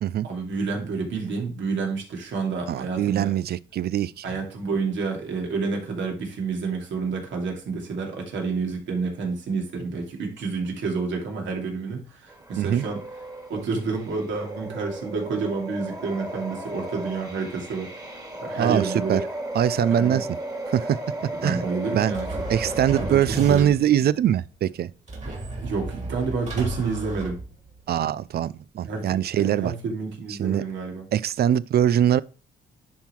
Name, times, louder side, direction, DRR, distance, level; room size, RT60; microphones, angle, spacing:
voice 1, 0.2-3.3 4.2-13.0 13.5-18.0 18.4-19.2 19.9-20.2 21.4-22.3 23.0-23.2 23.5-23.8 25.3-27.4 28.8-31.1, right 4 dB, 70° right, 2.6 m, -29 dB
voice 2, 2.7-4.4 12.6-12.8 18.6-19.2 19.5-20.3 20.7-21.0 21.4-21.6 21.9-22.1 22.5-24.9 27.9-29.7 30.3-30.6 31.1-32.2, right 10 dB, 55° right, 0.5 m, -22 dB
sound 1, 12.3-23.1, right 1 dB, 20° right, 2.0 m, -35 dB
sound 2, 22.1-24.0 25.1-27.9, right 2 dB, 35° right, 2.8 m, -33 dB
10.5 x 3.8 x 4.4 m
cardioid pair, 90°, 20 cm